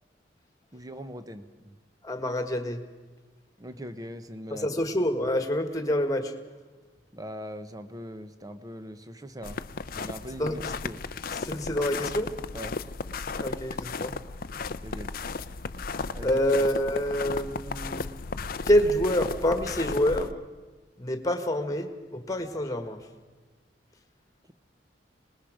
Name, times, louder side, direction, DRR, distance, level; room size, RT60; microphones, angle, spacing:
voice 1, 0.7-1.8 3.6-4.7 7.1-9.6 9.9-11.0 11.5-11.6 12.5-12.8 14.8-15.1 16.1-16.4, equal, 20° right, 10 dB, 1.0 m, -41 dB
voice 2, 2.0-2.8 4.5-6.3 10.4-10.7 11.4-12.3 13.4-14.1 16.2-18.1 18.7-20.4 21.0-23.0, equal, 20° left, 7 dB, 1.7 m, -27 dB
sound 1, 9.4-20.3, left 4 dB, 50° left, 0.6 m, -35 dB
25.5 x 20.0 x 5.1 m, 1.3 s
head